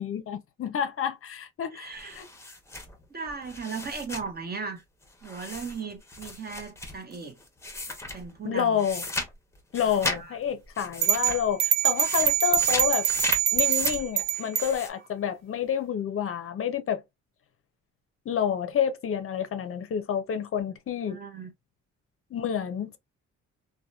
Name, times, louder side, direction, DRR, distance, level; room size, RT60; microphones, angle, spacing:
voice 1, 0.0-2.3 8.4-9.1 9.7-13.1 13.5-17.0 18.3-21.2 22.3-23.0, left 8 dB, 45° left, 0.5 m, -29 dB
voice 2, 1.7-2.2 3.1-4.8 5.2-7.4 8.1-8.8 10.2-10.4 21.0-21.5, right 5 dB, 30° right, 0.7 m, -37 dB
sound 1, 1.9-4.3 5.2-8.3 8.8-10.2 10.5-11.5 11.8-14.9, left 2 dB, 10° left, 0.7 m, -35 dB
sound 2, 11.0-14.7, right 11 dB, 65° right, 0.4 m, -24 dB
2.8 x 2.2 x 2.2 m
cardioid pair, 90°, 30 cm